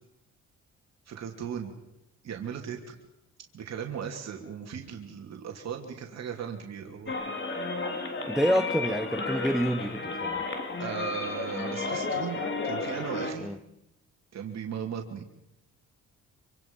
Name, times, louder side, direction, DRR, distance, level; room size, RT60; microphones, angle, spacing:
voice 1, 1.1-1.7 2.2-2.9 3.5-7.1 10.8-13.5 14.3-15.2, right 7 dB, 60° right, 3.0 m, -37 dB
sound 1, 7.1-13.3, left 3 dB, 40° left, 3.5 m, -32 dB
voice 2, 8.3-10.4 13.4-13.6, equal, ahead, 0.9 m, -28 dB
26.5 x 25.0 x 5.5 m
cardioid pair, 90°, 30 cm